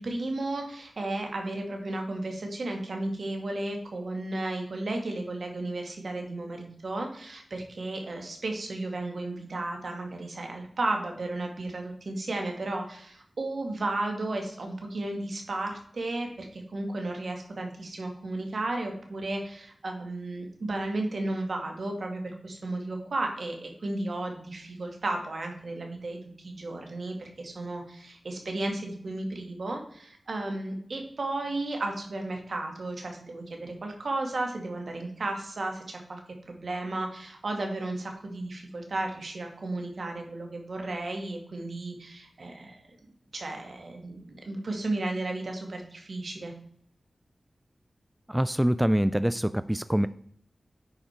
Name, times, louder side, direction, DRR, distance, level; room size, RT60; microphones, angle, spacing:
voice 1, 0.0-26.2 26.4-36.2 36.5-42.8 43.3-46.5, right 2 dB, 70° right, 3 dB, 1.9 m, -34 dB
voice 2, 48.3-50.1, equal, 10° right, 14 dB, 0.3 m, -25 dB
9.9 x 5.0 x 4.5 m, 0.63 s
wide cardioid pair, 65°, 0 cm